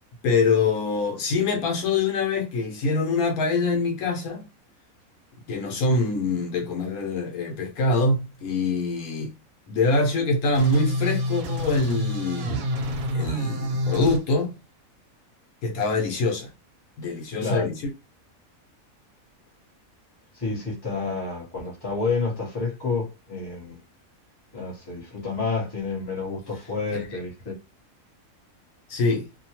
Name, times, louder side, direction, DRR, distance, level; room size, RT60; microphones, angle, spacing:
voice 1, 0.2-4.4 5.5-9.3 9.7-12.6 13.1-14.5 15.6-16.5 17.0-17.8 26.9-27.1 28.9-29.3, left 3 dB, 85° left, 1.2 m, -24 dB
sound 1, 10.5-14.2, left 1 dB, 75° right, 1.1 m, -28 dB
voice 2, 20.3-23.8 24.5-27.5, left 4 dB, 20° left, 0.8 m, -29 dB
2.8 x 2.2 x 2.8 m
omnidirectional pair, 1.5 m